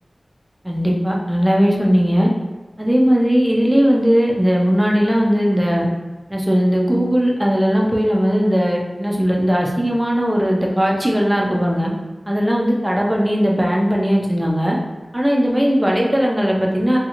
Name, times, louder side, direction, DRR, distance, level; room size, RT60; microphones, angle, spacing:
voice 1, 0.6-2.3 2.8-5.9 6.3-11.9 12.3-14.8 15.1-17.0, equal, 10° right, -2 dB, 0.5 m, -18 dB
2.8 x 2.3 x 2.5 m, 1.2 s
wide cardioid pair, 80°, 0 cm